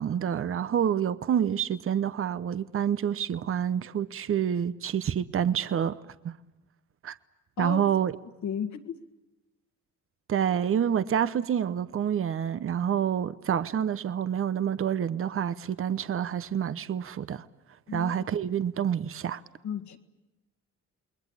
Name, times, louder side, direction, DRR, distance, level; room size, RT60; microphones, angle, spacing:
voice 1, 0.0-6.0 6.2-6.3 7.0-7.1 7.6-8.1 10.3-17.4 17.9-19.4, right 8 dB, 45° right, 0.9 m, -28 dB
voice 2, 8.4-9.0 17.9-18.3 19.6-20.0, left 7 dB, 70° left, 2.0 m, -34 dB
28.5 x 21.0 x 8.3 m
cardioid pair, 90°, 30 cm